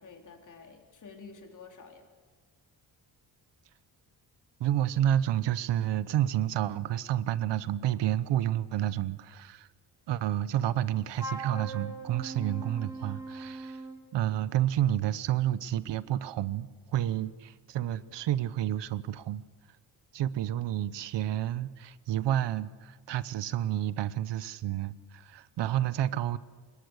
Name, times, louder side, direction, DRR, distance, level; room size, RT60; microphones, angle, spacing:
voice 1, 0.0-2.1, left 4 dB, 45° left, 3 dB, 3.8 m, -50 dB
voice 2, 4.6-9.7 10.1-13.8 14.1-19.4 20.1-26.4, right 12 dB, 90° right, 16 dB, 1.0 m, -30 dB
Wind instrument woodwind instrument, 11.2-14.0, right 2 dB, 10° right, 4.9 m, -40 dB
25.0 x 21.0 x 6.5 m, 1.5 s
cardioid pair, 145°, 41 cm